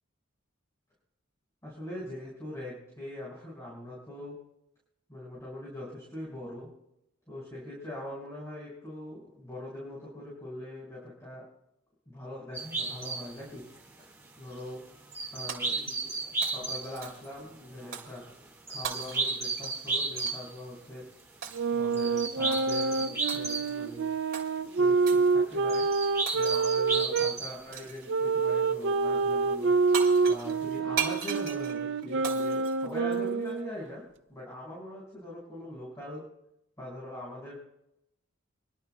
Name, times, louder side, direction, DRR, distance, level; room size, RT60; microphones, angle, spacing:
voice 1, 1.6-4.4 5.1-6.7 7.3-11.4 12.1-13.6 14.4-14.8 15.3-16.1 16.4-18.3 18.7-21.1 21.7-24.1 24.7-25.9 26.3-29.7 30.3-34.0 34.3-36.2 36.8-37.5, left 1 dB, 15° left, -7 dB, 5.4 m, -42 dB
sound 1, 12.5-20.6 21.0-21.5 21.8-24.8 25.2-28.2 29.3-29.4 29.7-30.5, right 3 dB, 10° right, 1.7 m, -34 dB
Shatter, 15.5-16.1 16.4-17.4 17.9-18.2 18.8-20.4 21.4-21.8 22.5-22.8 23.3-23.8 24.3-24.5 25.1-25.3 26.3-26.8 27.7-28.1 29.6-29.7 29.9-33.5, right 7 dB, 85° right, 2.5 m, -38 dB
sound 2, 21.5-27.3 28.1-33.7, right 4 dB, 55° right, 0.5 m, -27 dB
27.5 x 12.0 x 2.3 m, 0.83 s
head